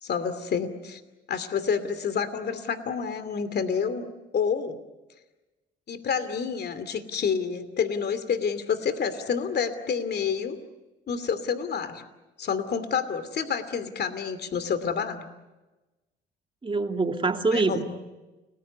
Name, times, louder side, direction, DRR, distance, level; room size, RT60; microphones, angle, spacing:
voice 1, 0.0-1.0 1.3-4.1 4.3-4.8 5.9-10.6 11.1-12.0 12.4-15.3 17.5-17.8, left 6 dB, 55° left, 12 dB, 2.7 m, -28 dB
voice 2, 16.6-17.8, right 3 dB, 25° right, 5 dB, 2.6 m, -25 dB
30.0 x 20.5 x 9.5 m, 1.1 s
cardioid pair, 90°, 20 cm